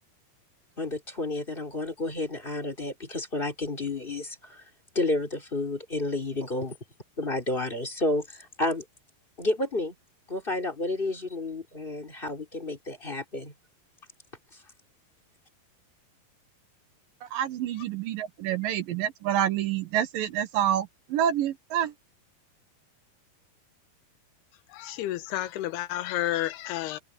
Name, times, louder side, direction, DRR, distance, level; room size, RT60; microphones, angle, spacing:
voice 1, 0.8-4.6 4.9-6.8 7.2-8.8 9.4-9.9 10.3-13.5, left 2 dB, 15° left, 2.8 m, -31 dB
voice 2, 17.2-21.9, right 10 dB, 70° right, 2.6 m, -28 dB
voice 3, 24.7-27.0, left 14 dB, 80° left, 3.0 m, -31 dB
omnidirectional pair, 4.6 m